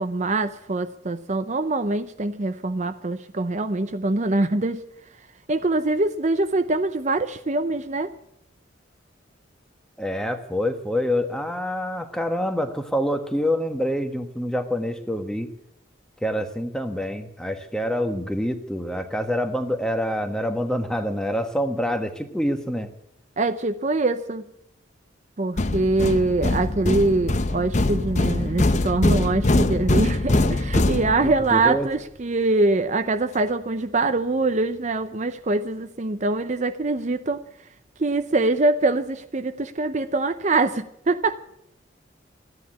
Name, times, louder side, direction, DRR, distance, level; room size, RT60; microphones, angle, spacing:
voice 1, 0.0-4.8 5.5-8.1 23.4-24.4 25.4-37.4 38.0-41.4, right 2 dB, 40° right, 9 dB, 0.7 m, -24 dB
voice 2, 10.0-15.5 16.2-22.9 31.2-31.9, equal, 5° left, 7 dB, 1.3 m, -26 dB
sound 1, 25.6-31.6, left 2 dB, 40° left, 0.8 m, -23 dB
14.0 x 10.5 x 10.0 m, 0.74 s
head